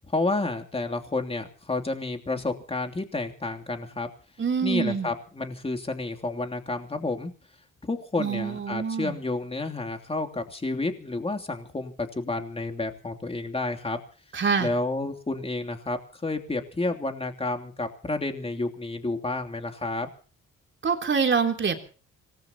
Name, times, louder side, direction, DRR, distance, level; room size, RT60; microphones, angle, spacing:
voice 1, 0.1-4.1 4.6-7.3 7.8-14.0 14.6-20.1, left 2 dB, 20° left, 4 dB, 3.0 m, -30 dB
voice 2, 4.4-5.1 8.2-9.2 14.3-14.7 20.8-21.8, right 6 dB, 40° right, 4 dB, 3.5 m, -25 dB
26.0 x 19.0 x 2.9 m, 0.39 s
cardioid pair, 90°, 30 cm